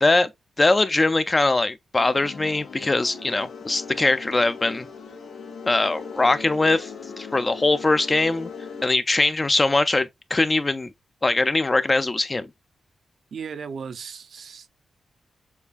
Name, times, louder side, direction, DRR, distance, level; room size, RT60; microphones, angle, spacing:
voice 1, 0.6-4.9 5.7-6.9 7.2-8.5 8.8-10.9 11.2-12.5, left 2 dB, 30° left, 0.4 m, -21 dB
sound 1, 2.0-8.8, left 5 dB, 85° left, 1.2 m, -39 dB
voice 2, 13.3-14.7, right 6 dB, 70° right, 0.4 m, -36 dB
6.7 x 2.4 x 2.4 m
cardioid pair, 75°, 0 cm